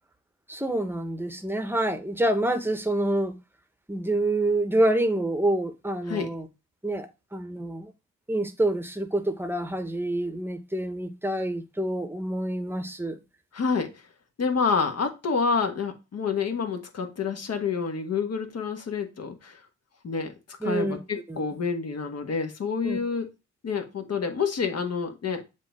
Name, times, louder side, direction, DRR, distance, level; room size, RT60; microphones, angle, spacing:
voice 1, 0.5-3.3 3.9-6.5 6.8-7.9 8.3-13.2 20.6-21.0 21.3-21.4 22.8-23.0, right 1 dB, 5° right, 1.1 m, -27 dB
voice 2, 13.5-14.0 14.4-19.6 20.0-20.3 20.6-23.3 23.6-25.4, left 5 dB, 45° left, 1.4 m, -28 dB
7.4 x 2.7 x 4.8 m
hypercardioid pair, 50°, 34 cm